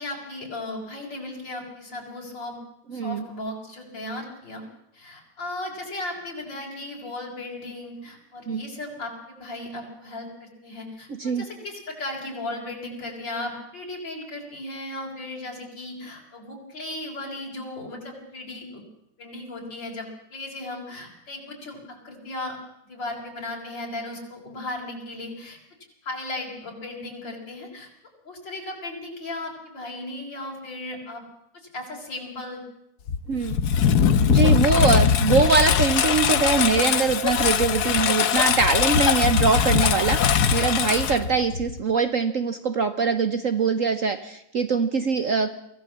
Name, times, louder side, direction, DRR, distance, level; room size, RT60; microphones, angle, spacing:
voice 1, 0.0-2.6 2.9-4.6 4.9-18.8 19.2-22.6 22.9-25.6 26.0-27.9 28.2-31.2 31.5-32.6, left 2 dB, 85° left, -2 dB, 5.1 m, -36 dB
voice 2, 2.9-3.2 8.5-8.6 11.1-11.5 33.3-33.6 34.3-45.5, right 5 dB, 50° right, 10 dB, 1.2 m, -23 dB
Engine, 33.1-41.8, left 7 dB, 65° left, 1.5 m, -21 dB
24.0 x 16.0 x 7.4 m, 0.79 s
omnidirectional pair, 2.0 m